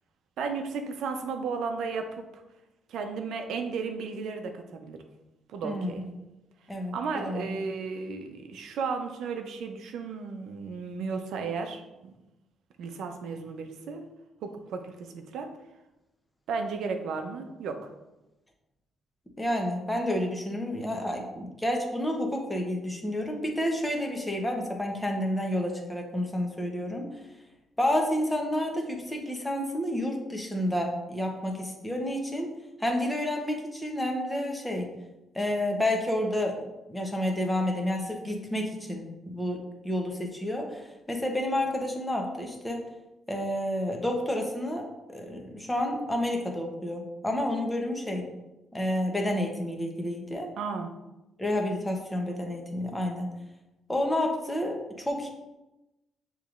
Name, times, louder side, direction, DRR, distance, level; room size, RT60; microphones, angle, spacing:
voice 1, 0.4-2.4 2.9-5.0 5.5-6.0 6.9-12.1 12.8-14.1 14.4-15.5 16.5-17.9 50.6-50.9, right 5 dB, 80° right, 6 dB, 0.6 m, -34 dB
voice 2, 5.6-6.0 6.7-7.5 19.4-27.1 27.8-32.5 32.8-34.9 35.3-42.8 43.3-48.3 48.7-50.5 51.4-53.3 53.9-55.3, left 1 dB, 10° left, 2 dB, 0.9 m, -30 dB
6.7 x 3.0 x 2.5 m, 0.99 s
cardioid pair, 90°, 0 cm